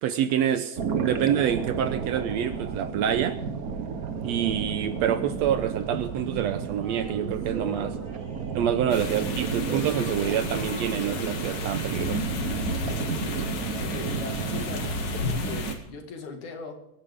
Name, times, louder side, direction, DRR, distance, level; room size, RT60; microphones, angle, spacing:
voice 1, 0.0-3.4 4.2-8.0 8.5-12.3, right 9 dB, 75° right, 10 dB, 1.8 m, -27 dB
sound 1, 0.8-15.7, right 5 dB, 90° right, 0.7 m, -32 dB
Male singing, 6.8-9.2 9.5-11.7, equal, 25° right, 5.6 m, -44 dB
sound 2, 8.9-15.8, left 4 dB, 65° left, 3.0 m, -33 dB
voice 2, 13.8-14.9 15.3-16.8, left 4 dB, 85° left, 3 dB, 3.6 m, -39 dB
24.0 x 10.5 x 3.6 m, 0.83 s
omnidirectional pair, 3.4 m